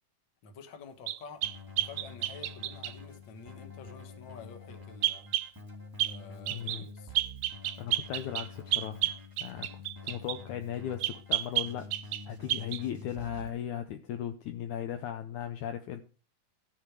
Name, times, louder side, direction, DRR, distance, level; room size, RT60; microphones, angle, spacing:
voice 1, 0.4-1.4 1.8-5.3 6.0-7.1, left 5 dB, 50° left, 6 dB, 1.5 m, -49 dB
sound 1, 1.1-3.0 5.0-5.5 6.0-6.2 6.5-6.8 7.2-10.4 11.0-12.2 12.5-12.8, right 15 dB, 80° right, 2.2 m, -31 dB
Keyboard (musical), 1.4-13.5, left 3 dB, 15° right, 0.7 m, -47 dB
voice 2, 6.5-6.9 7.8-9.0 9.4-9.7 10.0-11.9 12.3-16.0, left 10 dB, 75° left, 8 dB, 1.9 m, -37 dB
13.5 x 6.8 x 4.7 m, 0.37 s
omnidirectional pair, 3.9 m